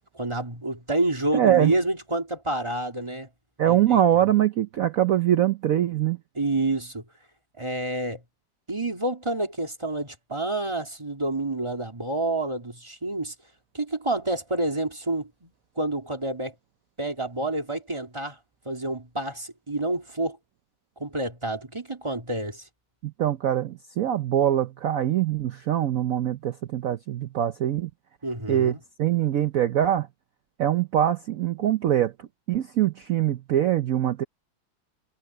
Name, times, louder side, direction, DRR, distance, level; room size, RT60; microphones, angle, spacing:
voice 1, 0.1-3.3 3.7-4.0 6.3-7.0 7.6-8.2 8.7-13.3 13.7-16.5 17.0-18.4 18.6-20.4 21.0-22.7 28.2-28.8, right 2 dB, 15° right, 2.7 m, -28 dB
voice 2, 1.3-1.7 3.6-6.2 23.0-27.9 28.5-30.1 30.6-34.2, right 11 dB, 90° right, 0.7 m, -23 dB
omnidirectional pair, 2.3 m